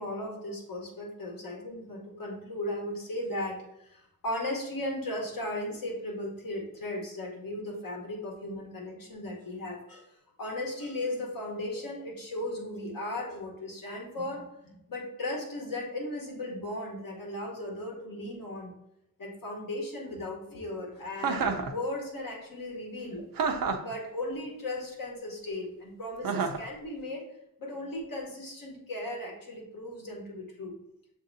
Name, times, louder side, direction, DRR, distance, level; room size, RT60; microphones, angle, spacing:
voice 1, 0.0-10.1 10.4-18.7 19.2-23.2 23.8-27.3 27.6-30.8, left 1 dB, 60° left, -1 dB, 1.0 m, -36 dB
Chuckle chortle, 21.2-21.7 23.4-23.9 26.2-26.7, right 5 dB, 60° right, 0.5 m, -28 dB
7.1 x 2.6 x 2.6 m, 0.83 s
wide cardioid pair, 175°, 38 cm